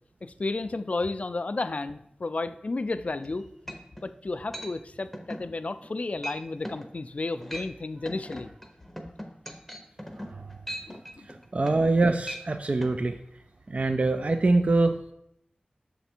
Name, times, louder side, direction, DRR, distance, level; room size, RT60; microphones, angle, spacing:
voice 1, 0.2-3.5 4.0-8.5 10.9-11.3, left 3 dB, 50° left, 11 dB, 0.3 m, -32 dB
sound 1, 3.2-3.3 3.7-4.1 4.5-4.7 5.1-5.5 5.8-6.0 6.2-6.4 6.6-6.9 7.3-7.7 8.1-11.9 12.2-12.5 12.8-12.9, equal, 5° left, 0.8 m, -39 dB
voice 2, 10.2-10.6 11.5-13.2 13.7-15.0, right 2 dB, 50° right, 8 dB, 0.3 m, -24 dB
6.7 x 3.3 x 4.4 m, 0.76 s
wide cardioid pair, 60°, 3 cm